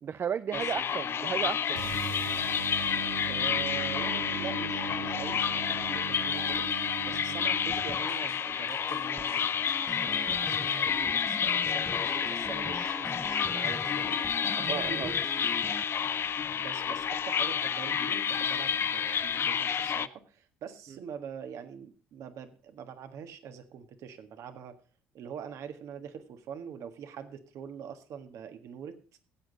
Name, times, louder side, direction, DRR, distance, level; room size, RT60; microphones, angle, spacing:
voice 1, 0.0-1.8 5.9-6.0 7.1-7.3 12.9-13.0 14.6-15.1, right 7 dB, 40° right, 14 dB, 0.4 m, -34 dB
sound 1, 0.5-20.1, left 7 dB, 40° left, 0.5 m, -30 dB
voice 2, 1.2-1.9 3.2-6.7 7.0-9.5 9.9-15.2 16.6-24.8 25.1-29.0, right 7 dB, 60° right, 7 dB, 1.6 m, -43 dB
sound 2, 1.7-7.9, right 7 dB, 80° right, 1.3 m, -39 dB
sound 3, 7.7-8.4 8.7-15.8, left 2 dB, 10° left, 0.8 m, -42 dB
15.0 x 8.1 x 3.9 m, 0.38 s
hypercardioid pair, 65°, 6 cm